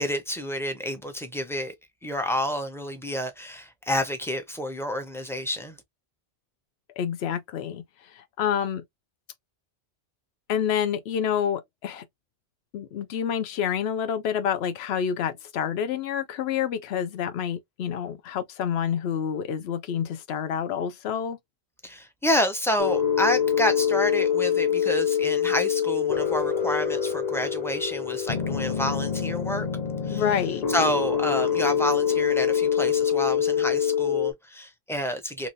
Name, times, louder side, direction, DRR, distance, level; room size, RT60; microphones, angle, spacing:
voice 1, 0.0-1.7 2.0-5.8 21.8-29.7 30.1-30.2 30.7-35.5, left 1 dB, 5° left, 0.5 m, -29 dB
voice 2, 7.0-7.8 8.1-8.8 10.5-12.0 12.7-21.4 30.1-30.6, left 8 dB, 75° left, 0.9 m, -28 dB
sound 1, 22.8-34.3, left 8 dB, 45° left, 0.7 m, -25 dB
2.9 x 2.6 x 2.5 m
omnidirectional pair, 1.1 m